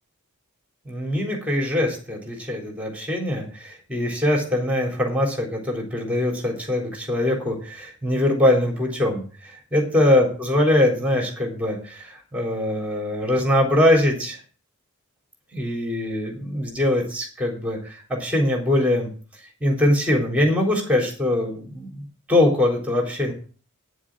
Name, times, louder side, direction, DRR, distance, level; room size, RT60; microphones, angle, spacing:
voice 1, 0.9-14.4 15.5-19.1 19.6-23.3, left 1 dB, 5° right, 1 dB, 3.9 m, -22 dB
10.0 x 7.4 x 6.3 m, 0.41 s
head